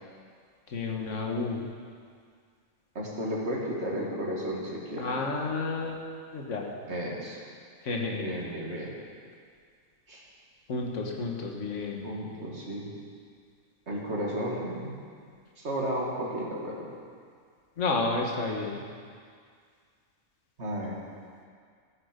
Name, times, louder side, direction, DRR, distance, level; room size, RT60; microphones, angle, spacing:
voice 1, 0.7-1.7 5.0-6.0 6.3-6.7 7.8-8.4 10.7-12.1 17.8-18.8, left 3 dB, 60° left, 0 dB, 1.7 m, -31 dB
voice 2, 2.9-5.1 6.9-7.4 8.1-8.9 10.1-10.2 12.0-12.9 13.9-15.0 15.6-16.9 20.6-21.0, equal, 50° right, -3 dB, 2.4 m, -33 dB
13.5 x 9.6 x 5.2 m, 2.1 s
omnidirectional pair, 1.4 m